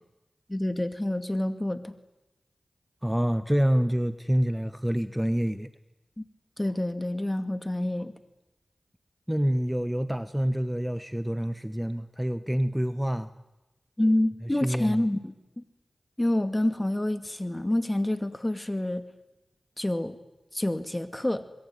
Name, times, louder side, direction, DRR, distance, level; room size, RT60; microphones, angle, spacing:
voice 1, 0.5-1.9 6.2-6.3 6.6-8.1 14.0-15.6 16.2-19.0 19.8-20.2 20.5-21.4, left 1 dB, 20° left, 10 dB, 2.2 m, -28 dB
voice 2, 3.0-5.7 9.3-13.3 14.4-15.1, equal, 5° right, 12 dB, 1.2 m, -27 dB
25.0 x 22.0 x 9.4 m, 1.0 s
cardioid pair, 40°, 0 cm